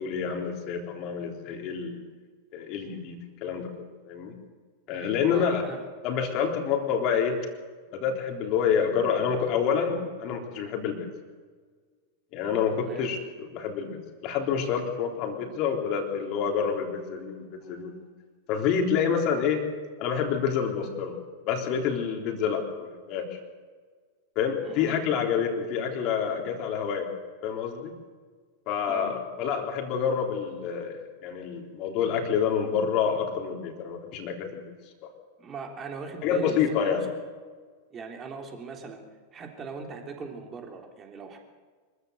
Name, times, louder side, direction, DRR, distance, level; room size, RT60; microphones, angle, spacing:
voice 1, 0.0-2.0 2.5-4.3 4.9-5.6 6.0-7.4 7.9-11.1 12.3-18.0 18.5-19.7 20.0-21.1 21.5-23.4 24.4-27.1 27.4-27.9 28.7-34.6 35.0-35.1 36.2-37.0, left 7 dB, 40° left, 2 dB, 3.6 m, -28 dB
voice 2, 5.3-5.8 12.8-13.1 24.6-25.0 28.9-29.2 35.4-37.0 37.9-39.0 39.3-41.4, right 5 dB, 25° right, 3 dB, 3.5 m, -40 dB
25.0 x 14.5 x 8.1 m, 1.5 s
figure-of-eight pair, 90°, 0 cm